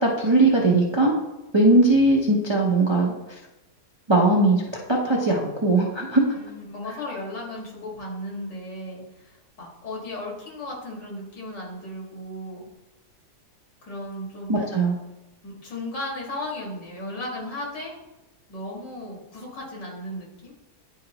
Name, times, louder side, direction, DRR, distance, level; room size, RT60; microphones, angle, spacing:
voice 1, 0.0-1.1 1.5-3.1 4.1-6.2 14.5-14.9, right 2 dB, 35° right, -2 dB, 0.4 m, -19 dB
voice 2, 6.3-12.7 13.8-14.7 15.4-17.9 18.5-20.5, left 1 dB, 90° left, -3 dB, 2.4 m, -35 dB
10.5 x 4.3 x 2.9 m, 1.0 s
omnidirectional pair, 1.8 m